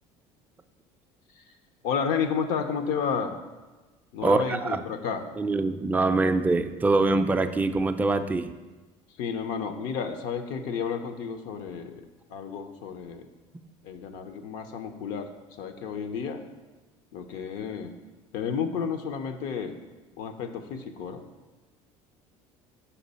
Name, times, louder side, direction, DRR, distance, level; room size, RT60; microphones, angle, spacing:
voice 1, 1.8-3.4 4.1-5.2 9.2-12.0 12.3-13.3 13.8-15.3 15.6-16.4 17.1-17.9 18.3-19.8 20.2-21.2, left 6 dB, 70° left, 7 dB, 0.6 m, -31 dB
voice 2, 4.2-4.8 5.4-8.5, right 3 dB, 10° right, 7 dB, 0.3 m, -24 dB
5.6 x 4.8 x 4.0 m, 1.2 s
supercardioid pair, 90°, 14 cm